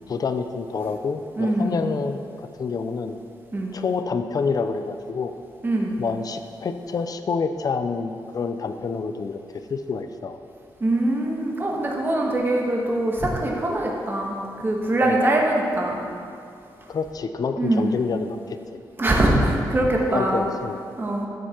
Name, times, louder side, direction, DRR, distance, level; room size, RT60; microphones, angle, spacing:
voice 1, 0.0-3.2 3.7-5.3 6.0-10.4 15.1-15.2 16.9-18.6 20.1-20.8, left 5 dB, 50° left, 8 dB, 0.6 m, -28 dB
voice 2, 1.3-1.8 3.5-3.7 5.6-6.0 10.8-16.0 17.6-17.9 19.0-20.4 21.0-21.3, right 1 dB, 25° right, -1 dB, 1.7 m, -22 dB
13.0 x 7.2 x 4.5 m, 2.4 s
wide cardioid pair, 115°, 8 cm